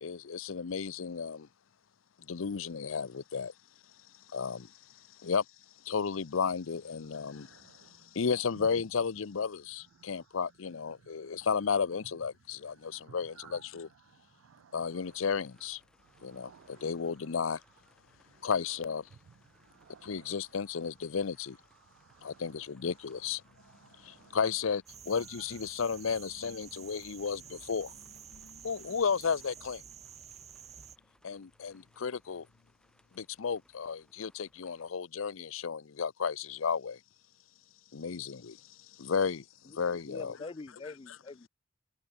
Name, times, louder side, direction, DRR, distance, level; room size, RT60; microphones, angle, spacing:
voice 1, 0.0-1.5 2.3-3.5 4.3-4.7 5.2-5.4 5.8-13.9 14.7-15.8 16.2-17.6 18.4-19.1 20.0-21.6 22.2-23.4 24.0-28.1 28.3-29.8 31.2-32.5 33.1-37.0 37.9-38.6 38.9-40.4, left 6 dB, 70° left, 0.6 m, -33 dB
voice 2, 7.2-8.1 8.6-8.7 10.0-10.2 11.0-11.4 12.9-13.6 14.1-15.0 16.1-16.8 18.3-18.5 19.5-20.3 21.9-22.5 23.6-24.4, right 7 dB, 70° right, 0.4 m, -57 dB
sound 1, 15.0-34.9, left 1 dB, 5° left, 4.1 m, -69 dB
sound 2, 24.9-31.0, right 8 dB, 35° right, 1.9 m, -50 dB
voice 3, 40.0-41.5, left 3 dB, 25° left, 0.4 m, -44 dB
head